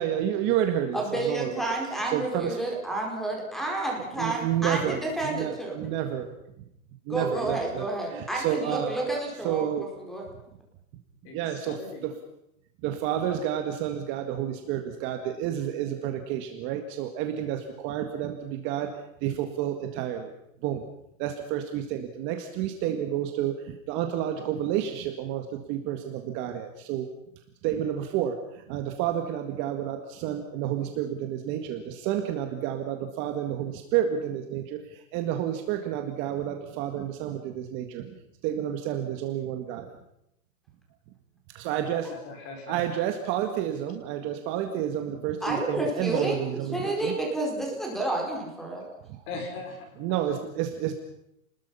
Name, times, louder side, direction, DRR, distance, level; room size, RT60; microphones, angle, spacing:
voice 1, 0.0-1.7 2.1-2.6 4.2-6.3 7.1-9.0 9.4-9.9 11.3-12.1 12.8-20.3 20.6-20.8 21.2-27.1 27.6-38.1 38.4-39.9 41.5-42.1 42.7-47.1 50.0-50.9, right 10 dB, 25° right, 6 dB, 1.8 m, -30 dB
voice 2, 0.9-5.8 7.1-9.6 10.1-10.2 45.4-48.9, right 2 dB, ahead, 0 dB, 4.6 m, -30 dB
voice 3, 11.2-12.1 41.8-42.8 49.3-50.2, left 3 dB, 30° left, 4 dB, 5.4 m, -40 dB
30.0 x 20.5 x 5.6 m, 0.79 s
hypercardioid pair, 160°, 42 cm